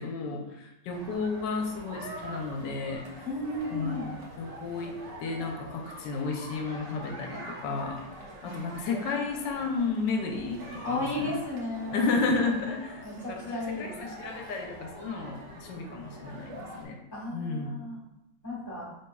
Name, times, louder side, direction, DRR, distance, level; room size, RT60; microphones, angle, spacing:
voice 1, 0.0-3.1 3.7-8.0 8.4-11.3 11.9-17.0 17.3-17.8, left 4 dB, 85° left, 3 dB, 1.3 m, -32 dB
sound 1, 0.9-16.8, right 1 dB, 55° right, 1.0 m, -45 dB
voice 2, 3.2-4.1 8.4-8.6 10.8-12.1 13.0-13.9 17.1-18.0 18.4-18.9, left 2 dB, 10° left, -5 dB, 1.1 m, -34 dB
5.4 x 3.5 x 2.2 m, 0.93 s
omnidirectional pair, 1.9 m